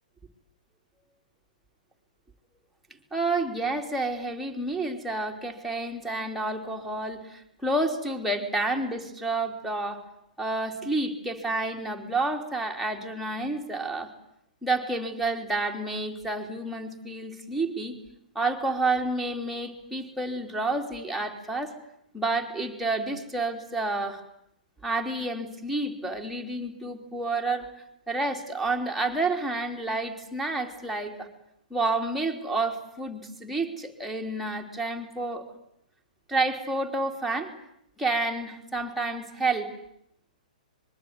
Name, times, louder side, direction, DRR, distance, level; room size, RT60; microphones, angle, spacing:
voice 1, 3.1-10.0 10.4-14.1 14.6-17.9 18.3-21.8 22.1-24.2 24.8-27.7 28.1-31.3 31.7-35.5 36.3-37.5 38.0-39.7, right 2 dB, ahead, 0 dB, 3.2 m, -29 dB
25.5 x 22.0 x 9.6 m, 0.76 s
hypercardioid pair, 130°, 5 cm